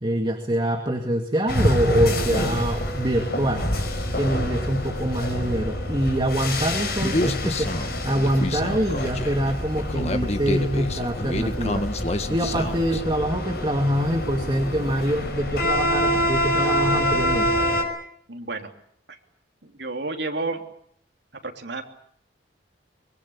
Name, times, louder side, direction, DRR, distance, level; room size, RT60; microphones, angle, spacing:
voice 1, 0.0-3.7 4.2-11.9 12.1-17.5, equal, 25° right, 3 dB, 2.2 m, -25 dB
sound 1, 1.5-17.8, equal, 55° left, 5.9 m, -26 dB
Human voice, 7.0-13.0, left 1 dB, 35° left, 1.6 m, -28 dB
voice 2, 18.3-18.7 19.1-19.2 19.6-20.6 21.4-21.8, right 3 dB, 65° right, 3 dB, 3.2 m, -31 dB
24.5 x 22.5 x 8.7 m, 0.66 s
head